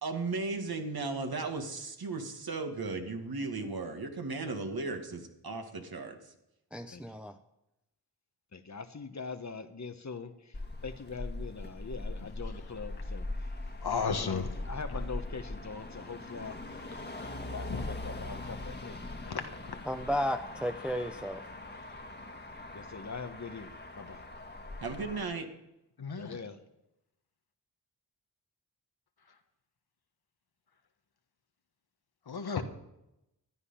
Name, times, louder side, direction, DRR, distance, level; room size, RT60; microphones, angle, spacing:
voice 1, 0.0-6.1 24.8-25.5, right 3 dB, 60° right, 2.1 m, -36 dB
voice 2, 6.7-7.4 19.9-21.4, equal, 5° right, 0.8 m, -33 dB
voice 3, 8.5-10.5 10.8-13.2 13.9-16.6 17.5-19.0 22.7-24.2 26.2-26.6, left 4 dB, 40° left, 1.3 m, -42 dB
Motor vehicle (road), 10.5-25.2, left 2 dB, 25° left, 1.8 m, -41 dB
voice 4, 13.8-14.4 17.7-17.8 19.3-19.7 26.0-26.4 32.3-32.6, left 5 dB, 60° left, 1.5 m, -33 dB
13.0 x 9.7 x 5.7 m
cardioid pair, 40°, 42 cm